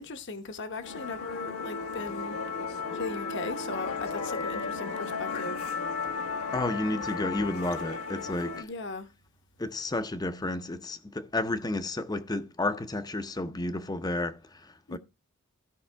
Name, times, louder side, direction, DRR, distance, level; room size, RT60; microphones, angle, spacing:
voice 1, 0.0-2.3 2.9-5.7 8.6-9.1 14.9-15.0, left 3 dB, 55° left, 1.0 m, -38 dB
Musical instrument, 0.8-8.6, left 4 dB, 90° left, 1.3 m, -34 dB
voice 2, 6.5-8.7 9.6-15.0, left 2 dB, 20° left, 0.6 m, -32 dB
15.5 x 5.4 x 3.4 m
head